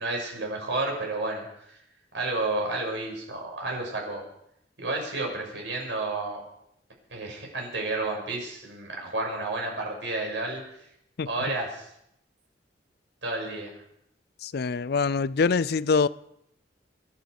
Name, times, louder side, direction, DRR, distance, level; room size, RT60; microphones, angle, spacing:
voice 1, 0.0-1.8 2.1-4.2 4.8-6.4 7.1-10.6 11.2-11.9 13.2-13.8, right 2 dB, 85° right, 6.4 m, -31 dB
voice 2, 14.4-16.1, left 4 dB, 60° left, 0.5 m, -24 dB
23.5 x 11.5 x 5.0 m
head